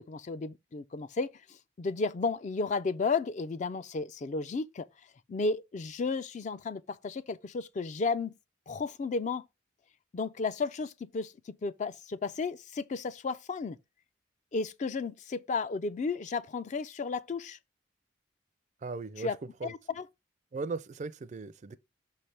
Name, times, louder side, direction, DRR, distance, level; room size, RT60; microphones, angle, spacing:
voice 1, 0.0-4.9 5.3-8.3 8.7-9.5 10.1-13.8 14.5-17.6 19.2-19.4 19.6-20.1, left 4 dB, 40° left, 0.3 m, -33 dB
voice 2, 18.8-19.3 19.6-19.7 20.5-21.8, right 3 dB, 40° right, 0.4 m, -37 dB
5.9 x 3.3 x 5.6 m
head